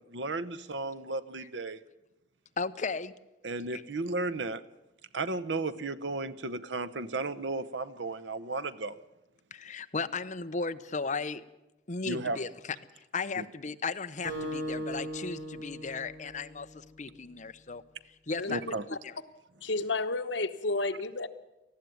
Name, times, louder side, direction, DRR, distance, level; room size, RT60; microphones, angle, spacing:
voice 1, 0.0-1.8 3.4-4.6 5.1-9.0 12.0-12.4 13.4-13.5 18.5-18.8, right 3 dB, 80° right, 14 dB, 0.9 m, -34 dB
voice 2, 2.6-3.1 3.7-3.8 9.5-11.4 11.9-12.5 13.1-17.8 18.3-18.6 18.9-19.1, left 4 dB, 40° left, 10 dB, 0.8 m, -35 dB
Acoustic guitar, 14.2-17.0, equal, 60° right, 5.4 m, -38 dB
voice 3, 18.4-19.0 19.6-21.3, left 2 dB, 85° left, 9 dB, 1.2 m, -32 dB
19.5 x 14.5 x 9.4 m, 0.97 s
head